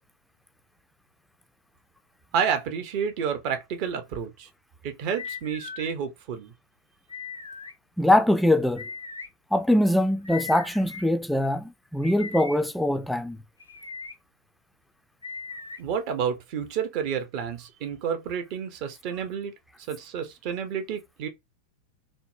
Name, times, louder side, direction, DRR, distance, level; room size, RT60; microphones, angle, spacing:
voice 1, 2.3-4.5 4.8-6.5 15.8-19.5 19.9-21.3, right 7 dB, 50° right, 0.7 m, -30 dB
sound 1, 5.2-5.9 7.1-7.7 8.8-9.3 10.2-11.1 12.0-12.6 13.6-14.1 15.2-15.8, left 5 dB, 90° left, 0.4 m, -38 dB
voice 2, 8.0-8.9 9.5-13.4, left 1 dB, 5° left, 0.3 m, -22 dB
3.6 x 2.1 x 2.6 m
figure-of-eight pair, 90°, 0 cm